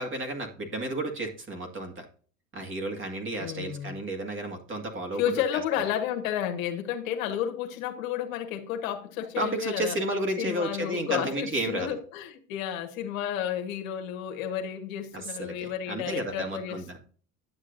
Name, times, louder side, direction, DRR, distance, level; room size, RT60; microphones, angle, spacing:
voice 1, 0.0-2.0 2.5-5.6 9.4-11.9 15.1-17.0, right 1 dB, 30° right, 2.0 m, -32 dB
voice 2, 3.4-4.0 5.1-10.0 10.4-17.0, left 9 dB, 75° left, 1.5 m, -31 dB
9.6 x 7.4 x 2.6 m
hypercardioid pair, 90°, 40 cm